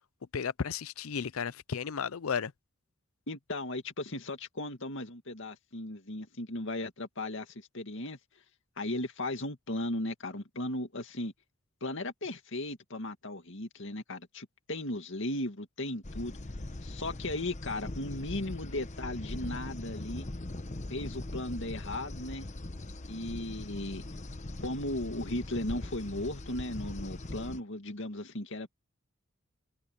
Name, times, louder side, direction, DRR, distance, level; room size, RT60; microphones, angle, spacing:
voice 1, 0.3-2.5, left 6 dB, 90° left, 0.6 m, -33 dB
voice 2, 3.3-8.2 8.8-11.3 11.8-16.3 16.8-20.3 20.9-22.5 23.1-24.0 24.6-28.7, left 1 dB, 65° left, 2.3 m, -36 dB
sound 1, 16.0-27.6, left 2 dB, 35° left, 1.0 m, -41 dB
head